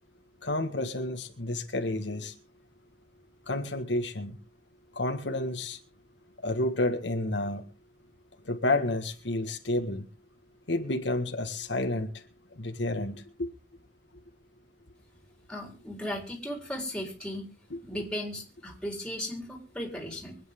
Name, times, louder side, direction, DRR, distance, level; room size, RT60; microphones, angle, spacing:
voice 1, 0.4-2.4 3.5-4.4 5.0-5.8 6.4-7.7 8.5-10.1 10.7-12.2 12.6-13.5, left 2 dB, 75° left, 5 dB, 1.7 m, -30 dB
voice 2, 15.5-17.5 17.8-20.4, left 1 dB, 5° left, 0 dB, 4.1 m, -36 dB
24.5 x 9.4 x 3.7 m, 0.35 s
head